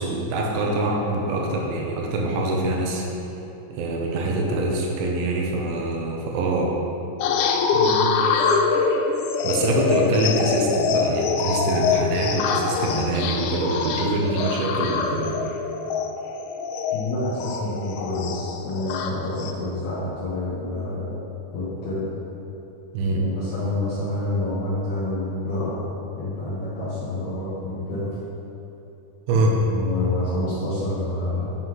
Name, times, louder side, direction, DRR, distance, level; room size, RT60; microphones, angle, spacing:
voice 1, 0.0-3.1 3.7-6.7 9.4-15.4 22.9-23.3 29.3-29.6, right 1 dB, 75° right, -1 dB, 2.3 m, -24 dB
sound 1, 7.2-19.5, left 5 dB, 85° left, 2.7 m, -24 dB
voice 2, 7.7-8.1 16.9-21.1 21.5-22.1 23.2-25.8 26.2-28.1 29.3-31.6, left 1 dB, 70° left, -10 dB, 1.8 m, -28 dB
9.5 x 5.5 x 3.1 m, 2.9 s
omnidirectional pair, 4.9 m